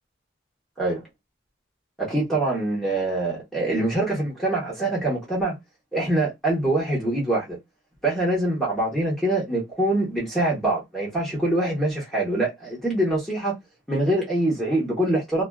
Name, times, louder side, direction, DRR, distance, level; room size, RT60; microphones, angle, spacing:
voice 1, 2.0-5.6 5.9-7.6 8.0-13.5 13.9-15.4, right 1 dB, ahead, 1.0 m, -24 dB
2.4 x 2.3 x 2.3 m
head